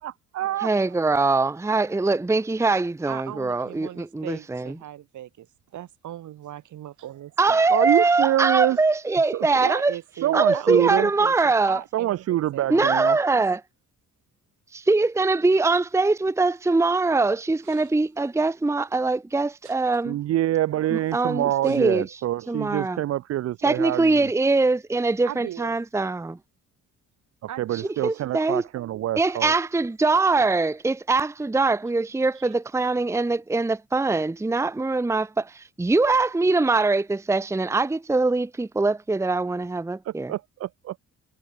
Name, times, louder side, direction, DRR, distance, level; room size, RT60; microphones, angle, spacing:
voice 1, 0.0-0.7 7.7-8.8 9.3-9.5 10.2-11.1 11.9-13.2 20.0-24.3 27.6-29.5 40.1-41.1, right 13 dB, 55° right, 0.5 m, -25 dB
voice 2, 0.6-4.8 7.4-9.9 10.3-11.8 12.7-13.6 14.7-20.2 20.9-22.1 22.5-23.0 23.6-26.4 27.7-28.6 29.2-40.3, right 3 dB, 10° right, 0.8 m, -23 dB
voice 3, 3.1-5.5 5.7-7.7 9.6-13.4 17.7-17.8 19.6-19.7 21.7-21.8 25.3-25.8 27.5-28.3 32.4-32.5, right 12 dB, 75° right, 5.1 m, -38 dB
cardioid pair, 90°, 30 cm